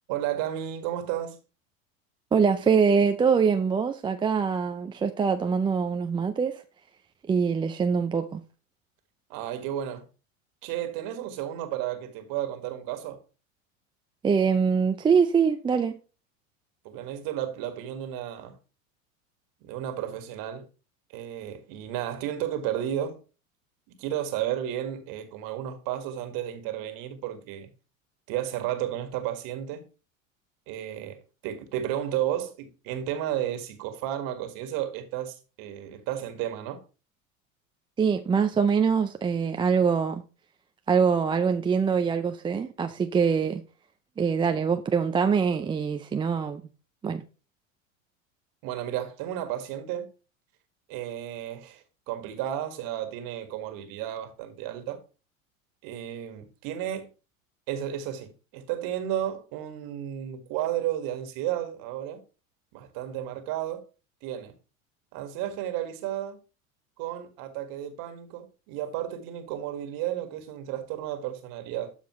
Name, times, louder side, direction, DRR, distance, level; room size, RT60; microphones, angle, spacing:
voice 1, 0.1-1.4 9.3-10.0 10.6-13.2 16.8-18.6 19.6-20.7 21.1-23.2 23.9-27.7 28.3-29.8 30.7-36.8 48.6-50.1 50.9-55.0 55.8-57.1 57.7-62.2 62.7-63.8 64.2-64.5 65.1-66.4 67.0-71.9, right 11 dB, 55° right, 1.8 m, -33 dB
voice 2, 2.3-6.6 7.3-8.4 14.2-15.9 38.0-40.2 40.9-43.6 44.2-46.6 47.0-47.2, right 6 dB, 15° right, 0.4 m, -24 dB
12.5 x 4.8 x 3.1 m
hypercardioid pair, 95°, 41 cm